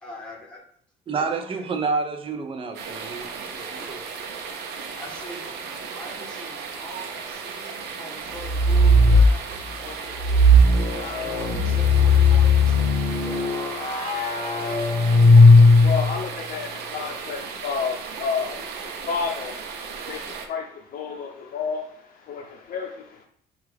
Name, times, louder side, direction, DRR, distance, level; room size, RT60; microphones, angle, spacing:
voice 1, 0.0-0.6 1.1-1.3 1.6-1.7 3.8-3.9 5.0-9.4 9.8-13.4, equal, 5° left, 1.5 m, -42 dB
voice 2, 1.1-4.0, right 4 dB, 30° right, 0.6 m, -29 dB
sound 1, 2.7-20.5, right 5 dB, 75° right, 0.7 m, -36 dB
sound 2, 8.4-9.3 10.2-16.2, left 2 dB, 35° left, 1.1 m, -16 dB
voice 3, 15.8-23.2, left 5 dB, 55° left, 0.6 m, -31 dB
4.5 x 2.4 x 3.3 m
cardioid pair, 110°, 17 cm